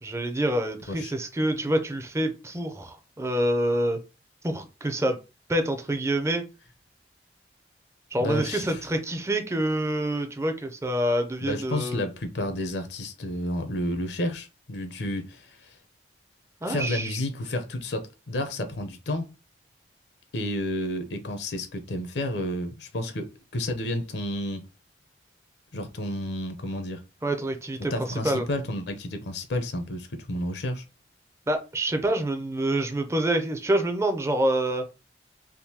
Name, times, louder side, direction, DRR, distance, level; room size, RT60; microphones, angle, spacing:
voice 1, 0.0-4.0 4.4-5.2 5.5-6.4 8.1-12.0 16.6-17.2 27.2-27.9 28.2-28.4 31.5-34.8, right 1 dB, 15° right, 0.5 m, -26 dB
voice 2, 8.2-8.8 11.4-15.8 16.6-19.3 20.3-24.6 25.7-27.0 27.9-30.8, left 1 dB, 70° left, 0.7 m, -31 dB
3.6 x 2.6 x 2.8 m
head